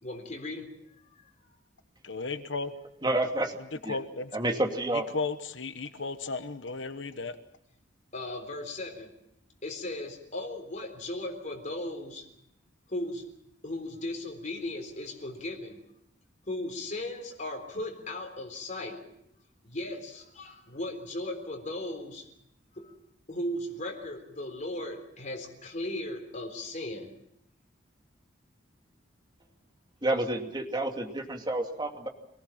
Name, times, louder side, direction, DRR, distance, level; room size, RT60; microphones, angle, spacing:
voice 1, 0.0-0.7 1.1-1.2 8.1-9.1 9.6-12.3 12.9-13.3 13.6-15.8 16.5-19.1 19.6-22.3 22.7-22.9 23.3-27.1, left 1 dB, 40° left, 3 dB, 3.8 m, -37 dB
voice 2, 2.0-2.7 3.9-4.3 4.9-7.4, left 4 dB, 70° left, 10 dB, 1.2 m, -34 dB
voice 3, 3.0-3.6 3.8-4.0 4.3-5.1 30.0-32.1, right 1 dB, 25° right, 3 dB, 2.6 m, -29 dB
25.5 x 18.5 x 7.4 m, 0.76 s
head